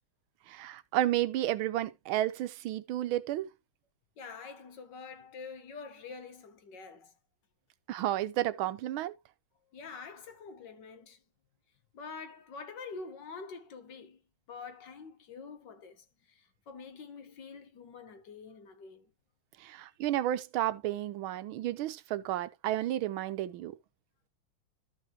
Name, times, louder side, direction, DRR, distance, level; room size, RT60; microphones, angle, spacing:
voice 1, 0.5-3.5 7.9-9.1 19.6-23.7, right 13 dB, 90° right, 1.5 m, -32 dB
voice 2, 4.2-7.2 9.7-11.2 11.9-14.2 14.5-19.1, left 4 dB, 65° left, 1.8 m, -46 dB
13.0 x 5.8 x 3.0 m
omnidirectional pair, 2.2 m